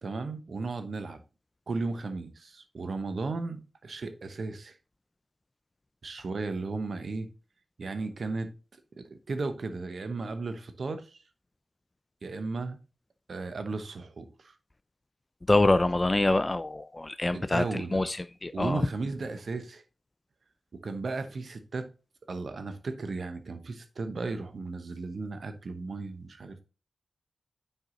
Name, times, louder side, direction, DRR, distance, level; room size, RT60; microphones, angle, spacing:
voice 1, 0.0-1.2 1.7-4.7 6.0-7.3 7.8-8.5 9.0-11.2 12.2-12.8 13.3-14.6 17.3-18.0 18.5-19.8 20.7-21.9 22.3-26.6, right 3 dB, 70° right, 0.9 m, -35 dB
voice 2, 15.5-18.8, left 2 dB, 30° left, 0.4 m, -25 dB
6.6 x 4.6 x 3.9 m
cardioid pair, 50°, 0 cm